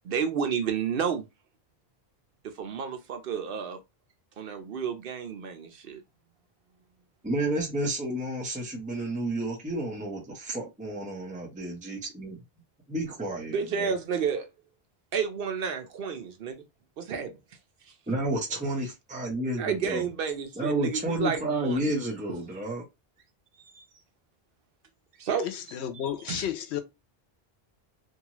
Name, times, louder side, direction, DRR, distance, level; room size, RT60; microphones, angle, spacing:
voice 1, 0.0-1.2 2.4-3.8 4.4-6.0 13.5-14.5 15.1-16.7 17.0-17.4 19.6-21.9 23.7-23.9 25.2-25.5 26.3-26.4, right 6 dB, 65° right, 0.7 m, -31 dB
voice 2, 7.2-12.4 12.9-13.9 18.1-20.0 20.6-22.8, right 1 dB, 10° right, 0.7 m, -31 dB
voice 3, 25.4-26.8, left 10 dB, 90° left, 0.8 m, -32 dB
2.7 x 2.3 x 2.9 m
omnidirectional pair, 1.1 m